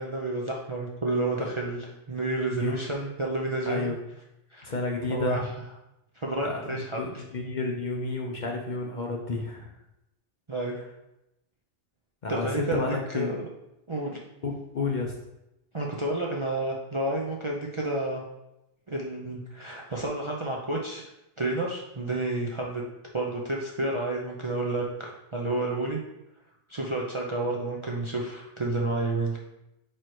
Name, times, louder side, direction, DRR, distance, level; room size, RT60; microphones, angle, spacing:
voice 1, 0.0-3.9 4.5-4.7 5.1-5.4 6.2-7.0 10.5-10.8 12.3-12.8 13.1-13.4 13.9-14.2 15.7-18.2 18.9-21.1 21.4-22.8 23.1-26.0 26.7-29.4, right 2 dB, 30° right, -2 dB, 0.6 m, -30 dB
voice 2, 3.7-4.0 4.6-5.5 6.4-9.7 12.2-13.4 14.4-15.1, left 3 dB, 45° left, 1 dB, 0.8 m, -31 dB
4.6 x 4.6 x 4.6 m, 0.89 s
omnidirectional pair, 1.2 m